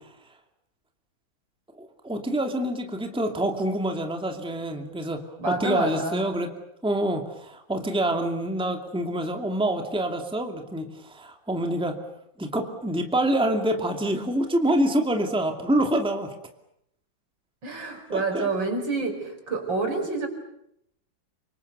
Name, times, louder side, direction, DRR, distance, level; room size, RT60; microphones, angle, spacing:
voice 1, 1.8-6.5 6.8-12.0 12.4-16.3 18.1-18.5, right 1 dB, 5° right, 4 dB, 2.3 m, -26 dB
voice 2, 5.4-6.3 17.6-20.3, right 3 dB, 70° right, 4 dB, 5.9 m, -28 dB
29.5 x 26.0 x 6.9 m, 0.76 s
omnidirectional pair, 2.1 m